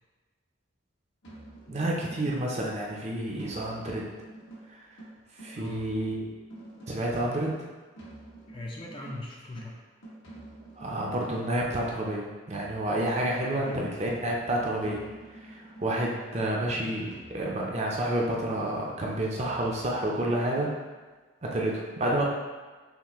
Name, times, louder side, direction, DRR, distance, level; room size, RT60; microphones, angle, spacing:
sound 1, 1.2-2.6 3.4-7.2 8.0-11.6 12.5-16.3 17.1-20.1 20.5-20.7, right 2 dB, 75° left, 1.2 m, -48 dB
voice 1, 1.7-4.1 4.7-4.8 5.4-6.3 6.9-7.5 10.8-15.0 15.4-20.7 21.4-22.3, right 1 dB, 35° right, -2 dB, 0.5 m, -29 dB
voice 2, 5.5-5.9 8.5-9.7 13.5-14.0, left 2 dB, 25° left, -2 dB, 0.4 m, -39 dB
5.7 x 2.1 x 3.0 m, 1.4 s
head